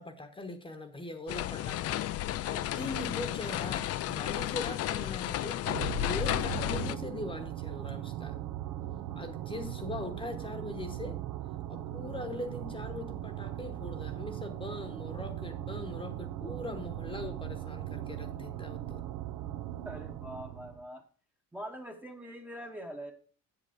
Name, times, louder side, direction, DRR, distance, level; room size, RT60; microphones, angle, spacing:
voice 1, 0.0-8.4 9.1-11.2 11.7-19.0, left 2 dB, 15° left, 8 dB, 1.0 m, -41 dB
sound 1, 1.3-7.0, left 13 dB, 50° left, 0.4 m, -33 dB
sound 2, 5.7-20.8, right 13 dB, 85° right, 0.7 m, -39 dB
voice 2, 19.8-21.0 21.5-23.1, equal, 5° right, 2 dB, 0.9 m, -43 dB
7.9 x 7.7 x 4.9 m, 0.40 s
cardioid pair, 155°, 32 cm